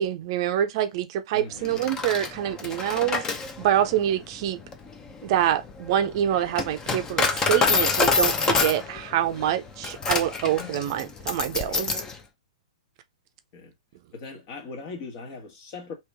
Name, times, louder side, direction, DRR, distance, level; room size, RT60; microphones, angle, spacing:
voice 1, 0.0-3.3 3.6-4.6 5.2-12.0, right 11 dB, 50° right, 0.5 m, -26 dB
voice 2, 1.3-1.8 11.6-11.9 13.5-13.7 14.1-15.9, left 4 dB, 45° left, 1.4 m, -40 dB
Coin (dropping), 1.6-12.2, left 4 dB, 20° left, 0.6 m, -27 dB
3.0 x 2.9 x 3.4 m
hypercardioid pair, 130°, 4 cm